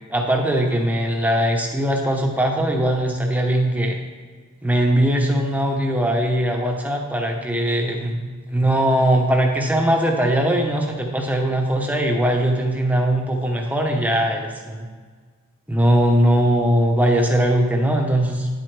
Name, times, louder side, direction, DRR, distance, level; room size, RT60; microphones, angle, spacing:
voice 1, 0.1-4.0 4.6-8.2 8.5-14.9 15.7-18.5, right 1 dB, 5° right, 1 dB, 0.9 m, -20 dB
9.8 x 7.8 x 3.3 m, 1.5 s
head